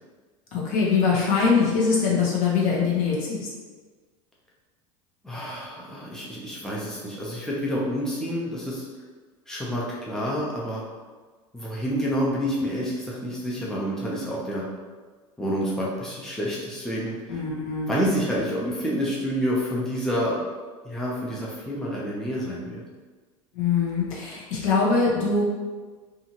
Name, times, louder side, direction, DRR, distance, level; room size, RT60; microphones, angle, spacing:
voice 1, 0.5-3.5 17.3-18.0 23.5-25.4, left 5 dB, 55° left, -4 dB, 0.9 m, -23 dB
voice 2, 5.2-8.8 9.5-10.8 11.5-14.6 15.4-17.4 17.9-20.4 20.8-22.8, equal, 5° left, -5 dB, 0.7 m, -28 dB
2.6 x 2.5 x 2.9 m, 1.4 s
hypercardioid pair, 80°, 17 cm